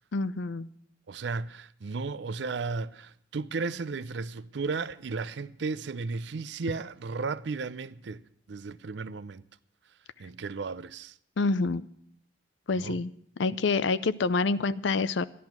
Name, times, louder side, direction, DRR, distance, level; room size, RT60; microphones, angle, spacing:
voice 1, 0.1-0.7 11.4-11.8 12.7-13.1 13.4-15.2, left 3 dB, 80° left, 0.5 m, -27 dB
voice 2, 1.1-9.4 10.2-11.1 12.7-13.0, right 4 dB, 70° right, 0.5 m, -34 dB
13.5 x 11.0 x 5.9 m
head